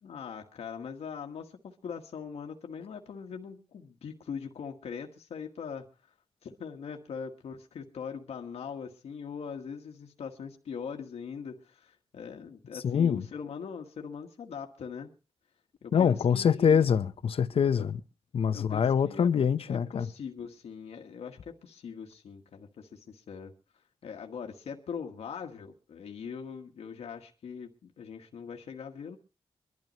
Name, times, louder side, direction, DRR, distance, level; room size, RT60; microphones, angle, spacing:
voice 1, 0.0-5.8 6.4-15.1 15.8-16.9 17.8-17.9 18.5-19.3 19.7-23.5 24.0-29.2, left 6 dB, 85° left, 1.5 m, -41 dB
voice 2, 12.7-13.3 15.9-18.0 18.3-20.1, left 7 dB, 65° left, 0.8 m, -25 dB
24.0 x 12.0 x 3.0 m
wide cardioid pair, 110°, 10 cm